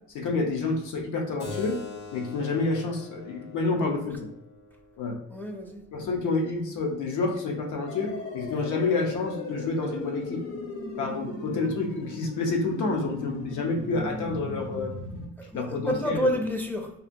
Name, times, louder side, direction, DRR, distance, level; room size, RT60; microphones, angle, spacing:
voice 1, 0.1-1.8 2.1-4.3 5.0-5.2 5.9-10.4 11.0-15.0 15.5-16.3, left 3 dB, 80° left, 2 dB, 0.7 m, -28 dB
Keyboard (musical), 1.4-6.5, left 3 dB, 65° left, 1.1 m, -44 dB
voice 2, 5.3-5.8 15.4-16.9, equal, 5° left, 1 dB, 0.4 m, -29 dB
sound 1, 7.9-15.3, left 2 dB, 50° left, 0.7 m, -37 dB
2.7 x 2.5 x 2.6 m, 0.83 s
cardioid pair, 90°, 30 cm